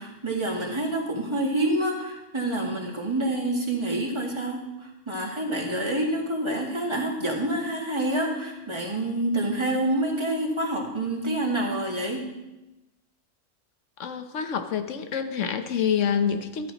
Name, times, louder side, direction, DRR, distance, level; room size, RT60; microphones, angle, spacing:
voice 1, 0.0-12.3, right 1 dB, 20° right, -1 dB, 2.0 m, -27 dB
voice 2, 14.0-16.7, left 7 dB, 75° left, 8 dB, 1.2 m, -27 dB
13.0 x 13.0 x 3.0 m, 0.98 s
omnidirectional pair, 1.3 m